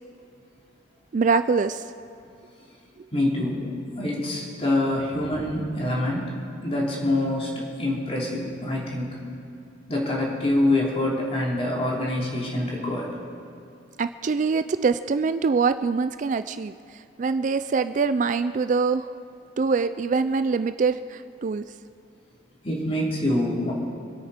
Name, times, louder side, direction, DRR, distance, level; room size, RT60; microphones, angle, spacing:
voice 1, 1.1-1.8 14.0-16.7 17.2-19.1 19.6-21.6, right 4 dB, 40° right, 11 dB, 0.3 m, -24 dB
voice 2, 3.1-3.7 4.0-6.3 6.6-9.1 9.9-13.1 22.6-23.7, left 1 dB, 30° left, -4 dB, 3.3 m, -25 dB
26.0 x 8.7 x 5.1 m, 2.6 s
head